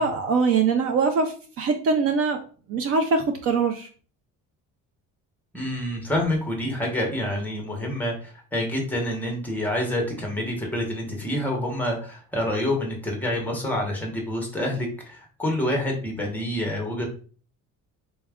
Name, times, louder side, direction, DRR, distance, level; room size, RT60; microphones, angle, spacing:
voice 1, 0.0-2.4 2.7-3.9, right 4 dB, 45° right, 6 dB, 0.5 m, -23 dB
voice 2, 5.5-17.1, left 1 dB, 5° left, 1 dB, 0.8 m, -27 dB
4.1 x 2.3 x 3.5 m, 0.40 s
cardioid pair, 170°, 31 cm